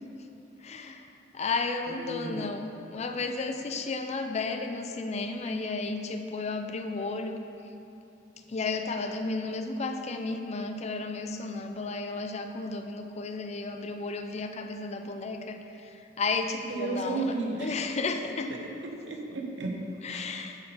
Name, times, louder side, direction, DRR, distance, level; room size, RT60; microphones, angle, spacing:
voice 1, 0.6-1.1 1.3-7.4 8.5-18.5 20.0-20.6, left 3 dB, 35° left, 6 dB, 0.5 m, -33 dB
voice 2, 1.9-2.5 16.7-17.7 18.5-20.2, right 3 dB, 75° right, 1 dB, 1.1 m, -34 dB
9.8 x 5.5 x 4.3 m, 2.7 s
head